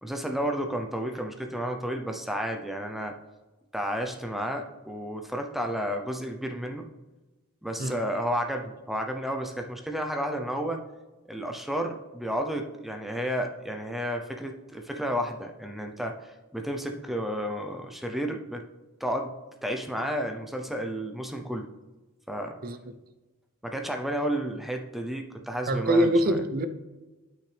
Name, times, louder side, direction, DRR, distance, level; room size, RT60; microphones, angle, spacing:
voice 1, 0.0-3.1 3.7-6.9 7.6-10.8 11.3-18.6 19.0-19.3 19.6-21.7 22.3-22.6 23.6-26.4, equal, ahead, 4 dB, 0.6 m, -32 dB
voice 2, 25.7-26.7, right 1 dB, 40° right, 9 dB, 0.6 m, -23 dB
8.7 x 6.1 x 3.4 m, 1.1 s
head